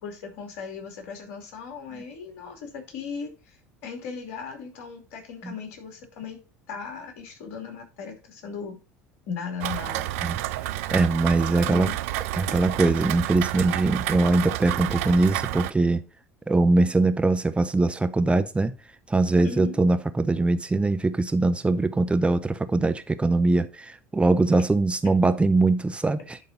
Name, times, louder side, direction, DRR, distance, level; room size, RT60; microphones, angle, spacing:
voice 1, 0.0-3.6 3.8-6.4 6.7-8.8 9.3-10.1 11.7-12.0 19.4-19.8, left 5 dB, 65° left, 2.6 m, -37 dB
Rain, 9.6-15.7, right 15 dB, 70° right, 0.5 m, -30 dB
voice 2, 10.9-11.9 12.4-16.0 16.5-18.7 19.1-26.4, right 3 dB, 15° right, 0.8 m, -22 dB
10.5 x 3.8 x 5.3 m
hypercardioid pair, 70°, 8 cm